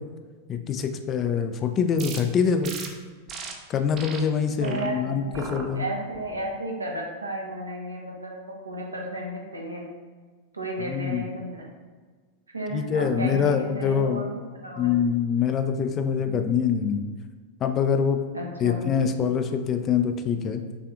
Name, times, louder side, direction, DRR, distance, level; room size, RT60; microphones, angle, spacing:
voice 1, 0.5-2.7 3.7-5.8 10.8-11.2 12.7-14.3 14.8-17.0 17.6-18.2 18.6-20.6, left 7 dB, 30° left, 7 dB, 0.4 m, -24 dB
sound 1, 2.0-2.2 2.6-2.9 3.3-3.5 3.9-4.2 4.6-4.9 5.3-5.6 6.1-6.5, right 5 dB, 30° right, 0.6 m, -37 dB
voice 2, 4.6-9.8 10.5-11.6 12.5-14.3 14.5-14.9 18.3-18.9, right 1 dB, 80° right, -1 dB, 0.9 m, -33 dB
5.8 x 3.4 x 2.5 m, 1.4 s
figure-of-eight pair, 90°, 0 cm